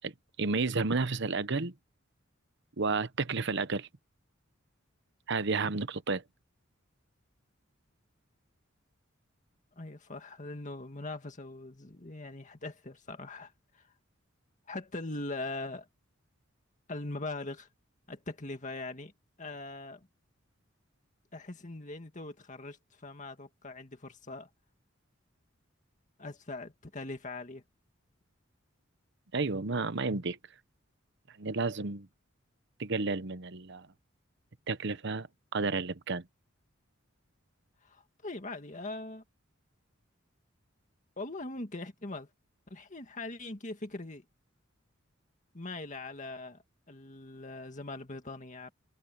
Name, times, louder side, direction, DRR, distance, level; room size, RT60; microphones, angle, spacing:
voice 1, 0.4-1.7 2.8-3.9 5.3-6.2 29.3-30.4 31.4-32.1 32.8-33.9 34.7-35.3 35.5-36.2, right 4 dB, 60° right, 1.0 m, -31 dB
voice 2, 9.8-13.9 14.7-15.9 16.9-17.7 18.1-19.1 19.4-20.1 21.3-24.5 26.2-27.6 37.8-39.2 41.2-42.3 42.7-44.2 45.5-46.6 46.9-48.7, left 2 dB, 40° left, 2.0 m, -41 dB
head